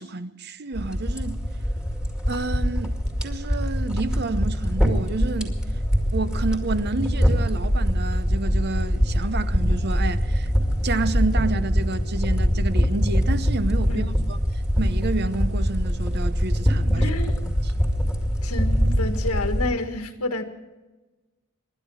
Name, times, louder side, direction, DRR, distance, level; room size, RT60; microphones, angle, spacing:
voice 1, 0.0-1.4 2.3-5.6 6.1-10.5 10.8-14.4 14.8-17.1 17.4-17.7, right 3 dB, 50° right, 0.8 m, -29 dB
sound 1, 0.7-19.7, equal, 5° right, 2.1 m, -23 dB
voice 2, 16.9-17.4 18.4-20.4, left 2 dB, 85° left, 1.6 m, -29 dB
25.5 x 11.0 x 4.8 m
head